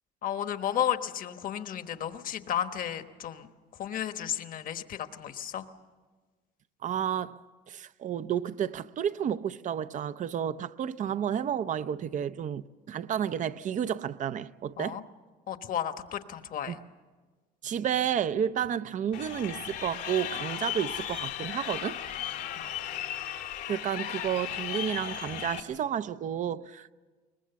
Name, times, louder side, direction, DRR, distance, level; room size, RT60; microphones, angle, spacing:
voice 1, 0.2-3.5 3.8-5.6 14.8-15.0 15.5-16.8 22.6-22.7, left 10 dB, 55° left, 1.2 m, -33 dB
voice 2, 6.8-7.4 7.7-15.0 16.7-16.8 17.6-22.0 23.7-26.9, right 9 dB, 50° right, 0.6 m, -31 dB
Crowd, 19.1-25.6, left 11 dB, 85° left, 1.8 m, -36 dB
23.0 x 20.0 x 7.0 m
cardioid pair, 110°, 17 cm